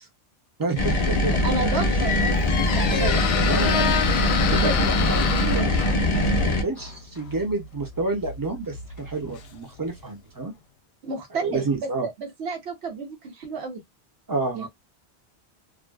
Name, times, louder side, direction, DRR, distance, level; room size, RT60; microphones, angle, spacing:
voice 1, 0.6-1.4 3.5-3.7 4.5-5.8 6.4-10.5 11.4-12.1 14.3-14.7, right 3 dB, 25° right, 0.5 m, -29 dB
sound 1, 0.8-6.6, left 1 dB, 50° left, 0.5 m, -22 dB
voice 2, 1.3-3.9 4.5-4.9 11.0-13.8 14.5-14.7, right 4 dB, 80° right, 0.9 m, -31 dB
Squeak, 1.4-10.0, left 7 dB, 75° left, 0.8 m, -30 dB
2.5 x 2.3 x 2.3 m
omnidirectional pair, 1.1 m